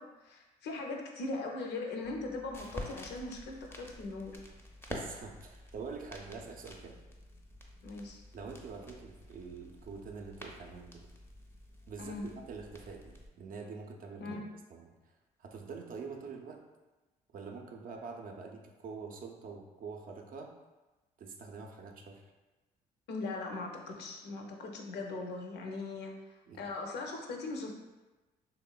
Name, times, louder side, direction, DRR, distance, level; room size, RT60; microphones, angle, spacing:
voice 1, 0.0-4.4 7.8-8.2 12.0-12.3 14.2-14.4 23.1-27.7, left 3 dB, 60° left, 1 dB, 0.5 m, -40 dB
sound 1, 2.0-13.3, left 1 dB, 10° left, 0.5 m, -49 dB
voice 2, 4.9-7.0 8.3-11.1 11.9-14.2 14.7-14.9 15.4-16.6 17.3-20.5 21.2-22.2 26.5-26.7, right 5 dB, 50° right, 2 dB, 0.4 m, -45 dB
3.0 x 2.0 x 2.2 m, 1.1 s
hypercardioid pair, 55°, 19 cm